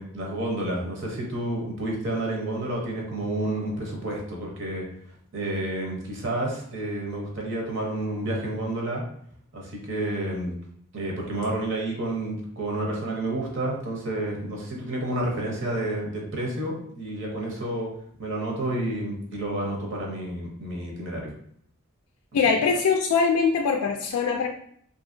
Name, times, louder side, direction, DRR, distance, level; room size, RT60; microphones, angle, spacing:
voice 1, 0.0-4.8 5.3-9.0 9.5-10.5 10.9-17.9 18.2-21.3, right 1 dB, 55° right, -1 dB, 0.8 m, -30 dB
voice 2, 22.3-24.5, left 5 dB, 90° left, 1 dB, 0.3 m, -22 dB
2.7 x 2.6 x 2.6 m, 0.65 s
head